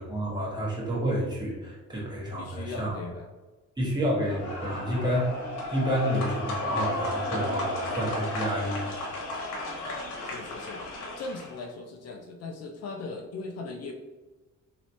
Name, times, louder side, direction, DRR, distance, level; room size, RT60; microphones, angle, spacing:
voice 1, 0.0-3.0 3.8-5.3 5.7-8.8, equal, 15° right, -6 dB, 1.4 m, -29 dB
voice 2, 2.4-3.3 10.2-13.9, left 3 dB, 55° left, 3 dB, 0.5 m, -39 dB
sound 1, 4.2-11.6, left 1 dB, 85° left, 1.1 m, -34 dB
3.1 x 2.9 x 2.8 m, 1.2 s
cardioid pair, 90°, 30 cm